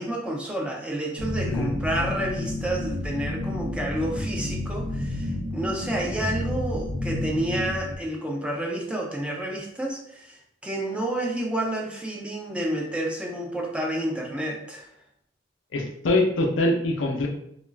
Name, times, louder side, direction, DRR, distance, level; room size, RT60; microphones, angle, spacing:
voice 1, 0.0-14.9, right 1 dB, 5° right, -1 dB, 0.3 m, -30 dB
sound 1, 1.2-8.0, left 1 dB, 50° right, 0.7 m, -30 dB
voice 2, 15.7-17.3, left 2 dB, 85° left, 2 dB, 0.5 m, -23 dB
2.3 x 2.2 x 3.2 m, 0.73 s
head